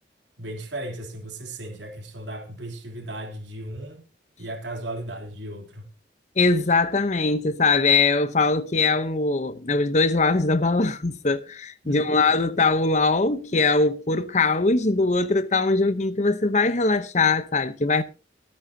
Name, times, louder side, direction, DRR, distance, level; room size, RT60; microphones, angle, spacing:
voice 1, 0.4-4.1 4.4-5.9 11.8-12.2, right 1 dB, 75° right, 3.2 m, -36 dB
voice 2, 6.4-18.0, left 3 dB, 40° left, 0.8 m, -21 dB
23.5 x 8.7 x 2.8 m
head